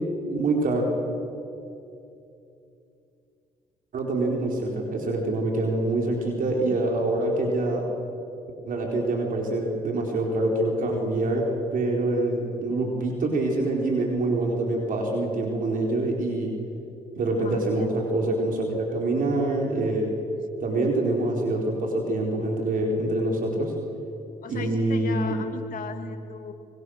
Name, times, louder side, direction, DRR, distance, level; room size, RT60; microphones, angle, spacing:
voice 1, 0.3-0.9 3.9-7.8 8.7-16.5 17.2-20.1 20.6-23.7 24.5-25.3, right 2 dB, 65° right, 0 dB, 4.3 m, -25 dB
voice 2, 17.4-17.9 24.4-26.5, left 6 dB, 65° left, 6 dB, 2.5 m, -37 dB
26.0 x 24.5 x 6.6 m, 2.7 s
supercardioid pair, 65°, 15 cm